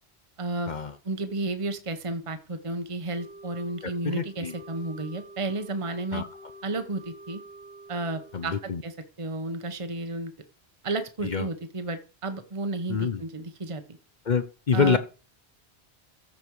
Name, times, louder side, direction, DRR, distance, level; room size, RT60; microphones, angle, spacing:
voice 1, 0.4-0.7 1.0-6.2 6.6-7.4 7.9-10.3 10.8-14.0 14.7-15.0, right 2 dB, 30° right, 9 dB, 1.1 m, -32 dB
Wind instrument woodwind instrument, 3.1-8.8, right 1 dB, 60° right, 1.8 m, -48 dB
voice 2, 4.0-4.5 6.1-6.3 8.3-8.8 11.2-11.5 12.9-13.2 14.3-15.0, left 6 dB, 45° left, 11 dB, 0.8 m, -26 dB
14.0 x 5.3 x 4.8 m, 0.34 s
omnidirectional pair, 1.1 m